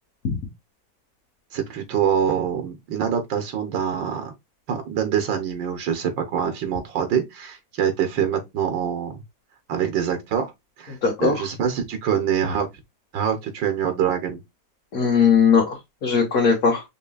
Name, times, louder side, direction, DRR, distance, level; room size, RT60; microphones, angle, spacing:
voice 1, 1.5-4.3 4.7-9.2 9.7-10.5 10.8-12.7 13.1-14.4, right 8 dB, 80° right, 1.7 m, -25 dB
voice 2, 11.0-11.5 14.9-16.8, left 6 dB, 50° left, 1.7 m, -19 dB
5.9 x 3.7 x 2.3 m
omnidirectional pair, 2.0 m